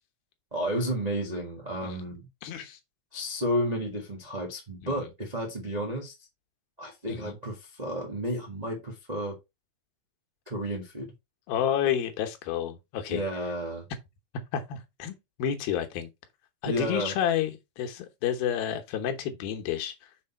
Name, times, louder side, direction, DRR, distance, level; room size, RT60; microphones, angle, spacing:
voice 1, 0.5-2.3 3.1-6.1 6.8-9.4 10.5-11.1 13.1-13.9 16.6-17.1, equal, 55° right, 0.4 m, -32 dB
voice 2, 2.4-2.8 4.8-5.0 7.1-7.4 11.5-13.2 14.5-16.1 16.6-19.9, left 9 dB, 80° left, 2.9 m, -30 dB
6.6 x 4.3 x 4.3 m
omnidirectional pair, 4.3 m